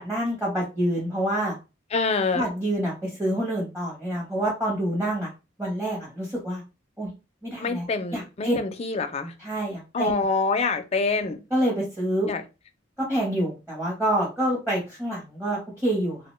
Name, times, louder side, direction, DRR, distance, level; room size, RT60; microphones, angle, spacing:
voice 1, 0.0-1.5 2.3-5.3 5.6-6.6 7.0-7.1 7.4-7.9 8.1-8.6 9.4-10.1 11.5-12.3 13.0-16.2, right 1 dB, 10° right, 0.8 m, -27 dB
voice 2, 1.9-2.5 7.6-9.3 9.9-11.4 12.3-12.4, left 4 dB, 35° left, 0.4 m, -26 dB
2.8 x 2.1 x 3.0 m
head